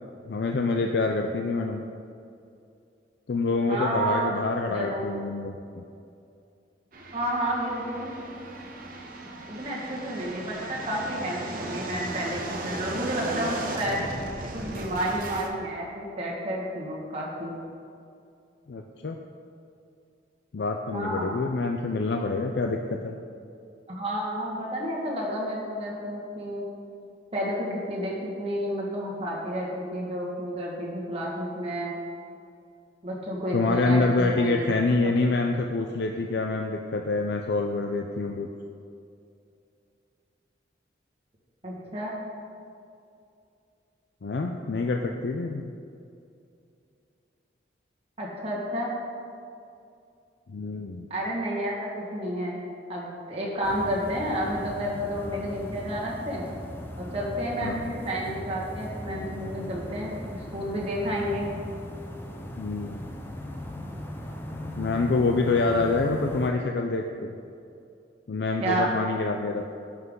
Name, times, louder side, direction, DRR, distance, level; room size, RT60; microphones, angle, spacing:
voice 1, 0.3-1.8 3.3-5.8 18.7-19.2 20.5-23.2 33.5-38.5 44.2-45.7 50.5-51.1 57.6-57.8 62.6-63.0 64.8-67.3 68.3-69.6, left 3 dB, 65° left, 2 dB, 0.4 m, -26 dB
voice 2, 3.7-4.4 4.7-5.1 7.1-8.1 9.5-14.0 14.5-17.5 20.9-21.3 23.9-26.6 27.3-31.9 33.0-34.7 35.0-35.1 41.6-42.1 48.2-48.9 51.1-52.5 52.9-56.4 57.0-61.5 68.6-68.9, right 1 dB, 30° right, -4 dB, 1.7 m, -30 dB
sound 1, 6.9-15.5, right 2 dB, 50° right, 0.8 m, -36 dB
sound 2, 53.6-66.5, left 1 dB, 10° left, 0.6 m, -38 dB
11.0 x 5.8 x 3.8 m, 2.5 s
head